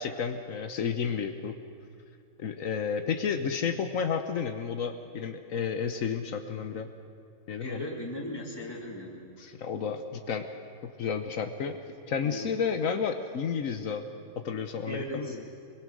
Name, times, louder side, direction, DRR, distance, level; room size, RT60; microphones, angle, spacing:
voice 1, 0.0-1.6 2.4-6.9 7.5-7.9 9.4-10.5 11.0-11.8 12.1-14.1 14.4-15.5, left 6 dB, 75° left, 7 dB, 1.4 m, -31 dB
voice 2, 7.6-9.2 12.2-12.5 14.8-15.5, equal, 15° left, -1 dB, 2.9 m, -37 dB
23.5 x 22.5 x 6.3 m, 2.3 s
omnidirectional pair, 1.4 m